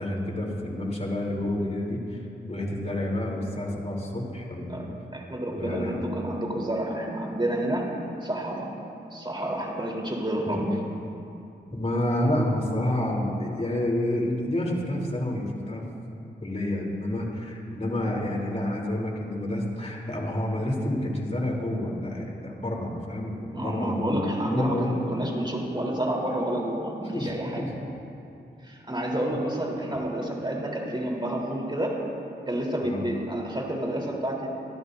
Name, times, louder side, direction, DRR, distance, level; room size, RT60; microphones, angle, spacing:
voice 1, 0.0-2.2 2.5-4.9 5.5-5.9 10.5-10.7 11.7-15.8 16.4-25.0 27.1-27.7 29.3-29.4 32.8-33.1, left 1 dB, 35° left, -2 dB, 3.5 m, -29 dB
voice 2, 5.1-7.9 8.2-8.7 9.1-10.8 23.5-27.7 28.6-32.0 32.5-34.5, right 1 dB, 25° right, -2 dB, 3.8 m, -29 dB
25.5 x 13.0 x 2.7 m, 2.8 s
cardioid pair, 40°, 19 cm